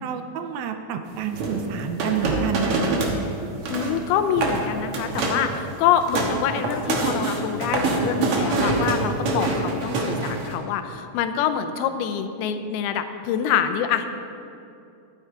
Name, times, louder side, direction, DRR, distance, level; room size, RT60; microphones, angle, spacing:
voice 1, 0.0-3.0, right 6 dB, 85° right, 7 dB, 2.4 m, -28 dB
sound 1, 1.3-3.2 3.5-4.0 4.3-4.6 4.9-5.5 5.8-10.5, right 3 dB, 65° right, 1.4 m, -25 dB
voice 2, 3.7-14.1, left 8 dB, 90° left, 9 dB, 2.5 m, -25 dB
12.0 x 9.0 x 4.6 m, 2.6 s
omnidirectional pair, 4.4 m